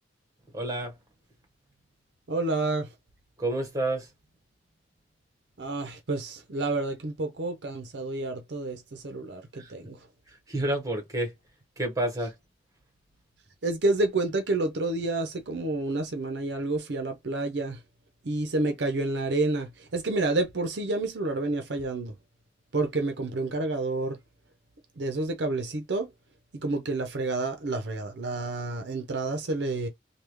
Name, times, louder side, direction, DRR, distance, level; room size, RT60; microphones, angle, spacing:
voice 1, 0.5-0.9 3.4-4.1 9.6-9.7 10.3-11.3 11.8-12.3, right 1 dB, 20° right, 1.2 m, -29 dB
voice 2, 2.3-2.9 5.6-10.0 13.6-17.8 18.2-22.2 22.7-24.2 25.0-26.1 26.6-29.9, right 2 dB, 65° right, 0.6 m, -29 dB
3.4 x 2.3 x 3.0 m
head